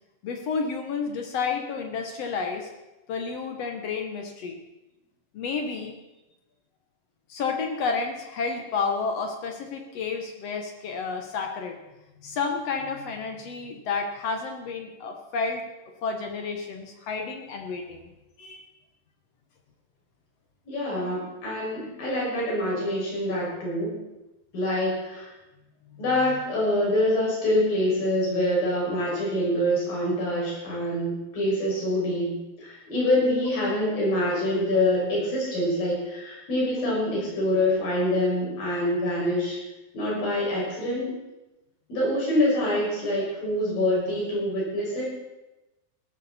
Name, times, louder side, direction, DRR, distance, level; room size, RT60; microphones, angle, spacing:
voice 1, 0.2-2.7 3.1-4.6 5.3-5.9 7.3-11.8 12.2-15.6 16.0-18.1 18.4-18.7 25.9-26.0, left 5 dB, 60° left, 4 dB, 1.8 m, -31 dB
voice 2, 20.7-24.0 24.5-25.3 26.0-39.6 39.9-41.2 41.9-45.1, left 1 dB, 80° left, -5 dB, 7.9 m, -25 dB
17.0 x 14.0 x 4.2 m, 1.0 s
omnidirectional pair, 4.0 m